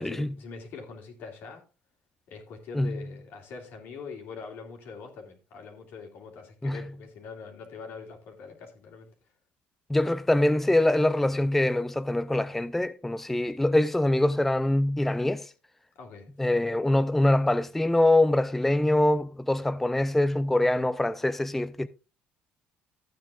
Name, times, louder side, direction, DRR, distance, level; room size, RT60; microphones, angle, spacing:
voice 1, 0.0-1.6 2.3-9.1 15.9-16.3, left 5 dB, 70° left, 2.9 m, -43 dB
voice 2, 9.9-15.5 16.4-21.9, left 1 dB, 5° left, 0.4 m, -24 dB
14.0 x 9.0 x 2.4 m
cardioid pair, 115°, 4 cm